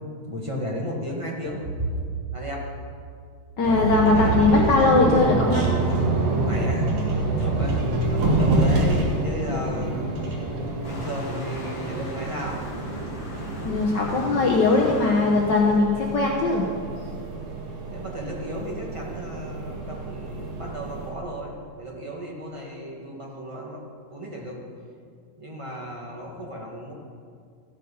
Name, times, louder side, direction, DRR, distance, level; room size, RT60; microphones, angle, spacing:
voice 1, 0.3-1.9 2.3-2.6 6.4-6.9 7.4-7.8 8.1-10.1 10.8-12.6 17.8-23.8 24.1-24.6 25.4-26.9, equal, 15° right, -3 dB, 1.2 m, -34 dB
voice 2, 3.6-5.7 13.6-16.7, left 3 dB, 75° left, 0 dB, 1.0 m, -20 dB
sound 1, 3.6-21.1, right 2 dB, 65° right, 3.2 m, -27 dB
Waves surf, 10.8-15.9, left 2 dB, 45° left, 2.3 m, -40 dB
14.5 x 9.1 x 5.6 m, 2.2 s
omnidirectional pair, 3.5 m